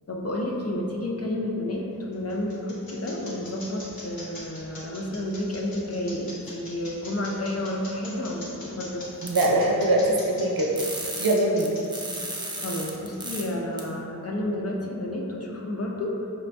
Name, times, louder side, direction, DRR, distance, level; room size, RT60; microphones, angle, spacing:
voice 1, 0.1-9.0 12.6-16.3, left 1 dB, 40° left, -1 dB, 0.6 m, -31 dB
sound 1, 1.9-13.7, left 2 dB, 70° left, 1.1 m, -43 dB
voice 2, 9.2-10.7 11.2-11.7, right 1 dB, 70° right, -2 dB, 0.7 m, -22 dB
sound 2, 9.3-9.5 10.8-13.4 13.8-13.9, right 2 dB, 10° right, 0.5 m, -34 dB
5.4 x 2.7 x 3.3 m, 2.9 s
wide cardioid pair, 65°, 37 cm